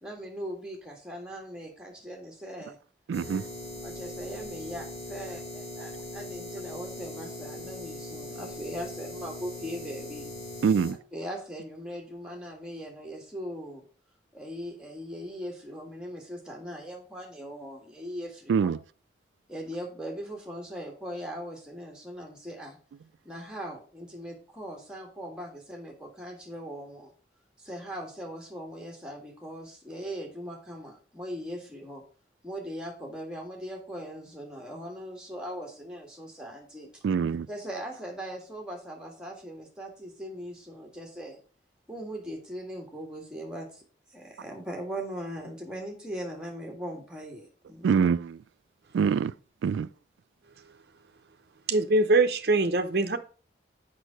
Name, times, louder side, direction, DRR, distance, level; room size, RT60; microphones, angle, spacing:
voice 1, 0.0-2.8 3.8-10.3 11.1-13.8 14.3-18.7 19.5-22.8 23.3-27.1 27.6-32.0 32.4-36.9 37.5-41.4 41.9-43.8 44.1-48.1, equal, 5° right, 1.7 m, -40 dB
sound 1, 3.1-10.9, left 1 dB, 35° left, 2.9 m, -40 dB
voice 2, 3.1-3.4 10.6-10.9 18.5-18.7 37.0-37.5 47.8-48.2 48.9-49.3 49.6-49.9, right 6 dB, 90° right, 0.3 m, -24 dB
voice 3, 51.7-53.2, right 2 dB, 60° right, 0.7 m, -23 dB
6.4 x 5.5 x 5.1 m
head